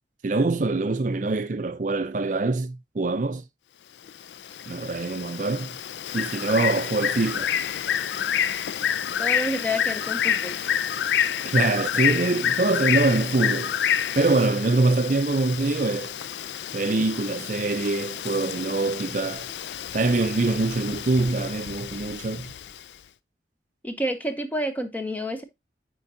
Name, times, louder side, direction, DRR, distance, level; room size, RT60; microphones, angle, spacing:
voice 1, 0.2-3.4 4.7-5.8 6.1-7.5 11.4-13.8 14.2-16.1 16.7-19.5 19.9-22.5, right 3 dB, 45° right, 0.5 m, -24 dB
Bird, 4.1-22.8, left 9 dB, 80° left, 0.4 m, -28 dB
voice 2, 9.2-10.6 23.8-25.4, equal, 10° left, 0.7 m, -29 dB
8.7 x 4.6 x 2.6 m
head